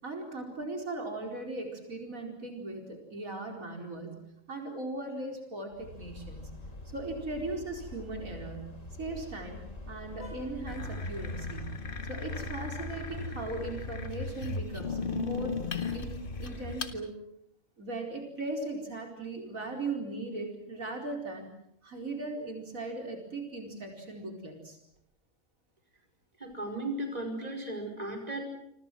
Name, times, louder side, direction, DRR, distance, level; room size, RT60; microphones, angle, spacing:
voice 1, 0.0-4.2 4.5-6.5 6.8-9.6 9.9-11.8 12.1-15.6 15.9-17.1 17.8-21.5 21.8-24.8, right 2 dB, 80° right, 2 dB, 5.0 m, -38 dB
sound 1, 5.7-16.9, left 2 dB, 65° left, 4.2 m, -45 dB
sound 2, 10.7-17.0, left 4 dB, 40° left, 1.7 m, -36 dB
voice 2, 26.4-28.5, right 1 dB, 30° right, 4 dB, 5.2 m, -36 dB
28.5 x 25.5 x 6.2 m, 0.73 s
omnidirectional pair, 1.4 m